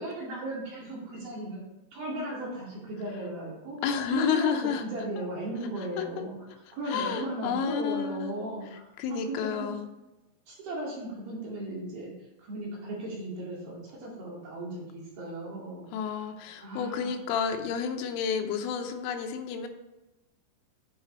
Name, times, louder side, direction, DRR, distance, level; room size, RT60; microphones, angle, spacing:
voice 1, 0.0-1.6 1.9-3.8 4.1-8.8 9.1-9.7 10.5-12.1 12.4-16.2 16.6-17.1, right 1 dB, 55° right, -4 dB, 3.5 m, -36 dB
voice 2, 3.8-4.8 5.2-5.3 6.0-6.1 6.9-8.4 9.0-9.9 15.9-19.7, left 7 dB, 85° left, 5 dB, 3.4 m, -30 dB
8.7 x 8.2 x 4.2 m, 1.0 s
omnidirectional pair, 5.6 m